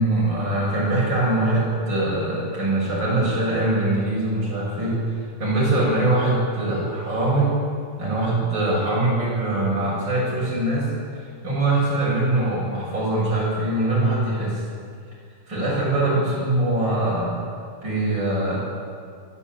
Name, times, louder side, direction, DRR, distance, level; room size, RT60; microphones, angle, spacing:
voice 1, 0.0-7.5 8.0-14.6 15.5-17.4 17.8-18.6, right 2 dB, 35° right, -5 dB, 8.5 m, -22 dB
23.5 x 15.5 x 8.7 m, 2.2 s
omnidirectional pair, 3.3 m